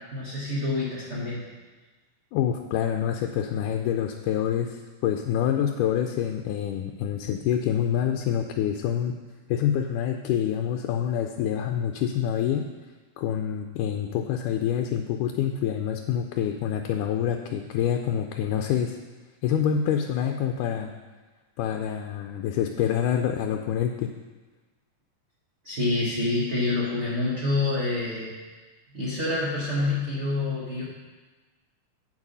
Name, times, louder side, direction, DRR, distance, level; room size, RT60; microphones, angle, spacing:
voice 1, 0.1-1.4 25.6-28.3 28.9-30.8, left 2 dB, 40° right, -7 dB, 1.0 m, -27 dB
voice 2, 2.3-9.1 9.5-12.7 13.2-19.0 19.4-20.9 21.6-24.1, left 9 dB, 85° left, 4 dB, 2.1 m, -26 dB
8.1 x 7.3 x 5.4 m, 1.3 s
omnidirectional pair, 3.6 m